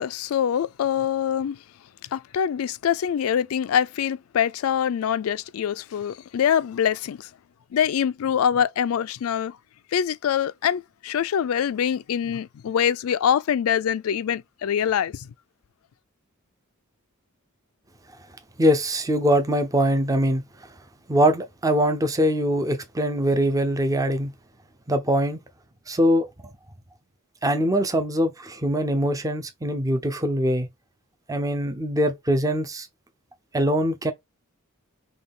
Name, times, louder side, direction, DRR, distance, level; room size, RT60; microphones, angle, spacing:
voice 1, 0.0-1.6 2.1-7.3 7.7-9.6 9.9-15.3, left 8 dB, 75° left, 0.3 m, -24 dB
voice 2, 18.6-20.4 21.1-24.3 24.9-25.4 25.9-26.3 27.4-30.7 31.3-32.9 33.5-34.1, equal, 15° right, 0.5 m, -22 dB
5.4 x 2.3 x 3.5 m
head